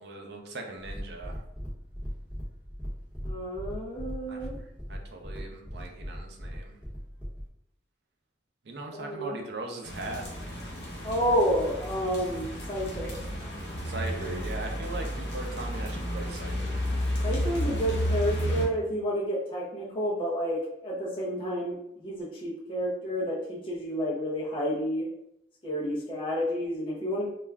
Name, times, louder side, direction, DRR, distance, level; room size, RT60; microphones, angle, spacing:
voice 1, 0.0-1.4 4.3-4.4 4.9-6.8 8.7-10.2 13.8-16.8, right 2 dB, 60° right, 2 dB, 0.5 m, -39 dB
sound 1, 0.8-7.5, equal, 5° right, 0.8 m, -39 dB
voice 2, 3.2-4.5 8.9-9.4 11.0-13.1 14.1-14.4 17.2-25.1 25.6-27.3, equal, 30° left, -6 dB, 0.5 m, -30 dB
sound 2, 9.8-18.7, equal, 65° left, 0.8 m, -32 dB
2.3 x 2.1 x 3.4 m, 0.78 s
head